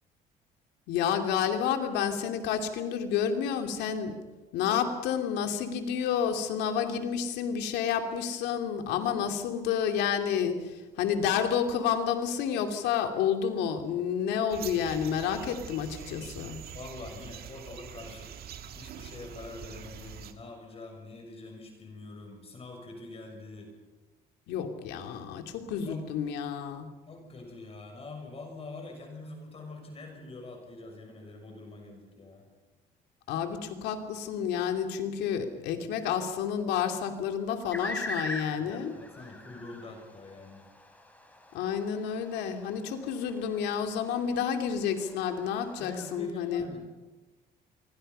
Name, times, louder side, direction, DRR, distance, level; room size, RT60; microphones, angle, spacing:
voice 1, 0.9-4.1 4.5-16.6 24.5-26.9 33.3-38.9 41.5-46.7, left 8 dB, 90° left, 5 dB, 2.8 m, -30 dB
sound 1, 14.5-20.3, right 8 dB, 65° right, 2.0 m, -44 dB
voice 2, 16.7-18.5 18.7-23.7 25.9-26.0 27.1-32.5 38.5-40.7 45.8-46.9, left 2 dB, 35° left, 3 dB, 6.5 m, -45 dB
sound 2, 37.7-46.3, left 1 dB, 10° left, 3.9 m, -43 dB
27.0 x 24.0 x 5.6 m, 1.2 s
cardioid pair, 110°, 17 cm